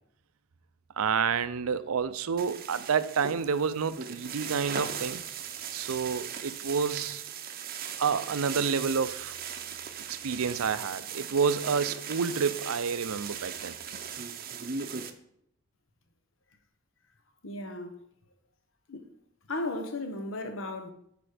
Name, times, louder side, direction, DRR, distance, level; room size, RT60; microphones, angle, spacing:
voice 1, 1.0-5.2 5.7-7.2 8.0-9.3 10.1-13.8, right 6 dB, 85° right, 0.5 m, -29 dB
sound 1, 2.4-15.1, right 7 dB, 45° right, 0.7 m, -38 dB
voice 2, 17.4-18.0 18.9-19.1 19.5-20.9, left 2 dB, 65° left, 1.1 m, -35 dB
8.8 x 5.1 x 5.0 m
head